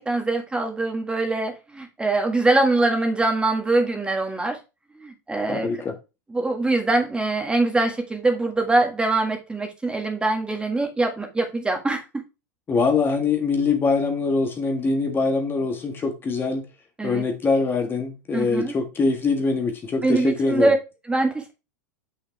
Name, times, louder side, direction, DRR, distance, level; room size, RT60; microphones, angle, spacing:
voice 1, 0.0-4.6 5.0-5.7 6.3-12.0 17.0-17.2 18.3-18.7 20.0-20.8 21.1-21.5, right 2 dB, 10° right, 1.7 m, -23 dB
voice 2, 5.5-5.9 12.7-16.7 17.0-20.7, left 4 dB, 25° left, 1.5 m, -23 dB
6.6 x 5.8 x 3.2 m
supercardioid pair, 120°, 9 cm